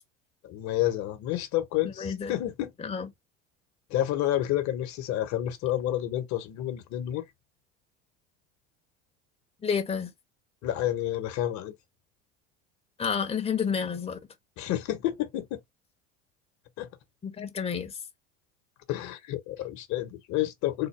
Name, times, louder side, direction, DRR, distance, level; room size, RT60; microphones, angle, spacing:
voice 1, 0.4-2.7 3.9-7.2 10.6-11.7 14.6-15.6 16.8-16.9 18.9-20.9, left 13 dB, 55° left, 1.1 m, -29 dB
voice 2, 1.8-2.3 2.8-3.1 9.6-10.1 13.0-14.2 17.2-18.0, left 6 dB, 15° left, 1.0 m, -30 dB
3.8 x 2.2 x 3.3 m
hypercardioid pair, 80°, 35 cm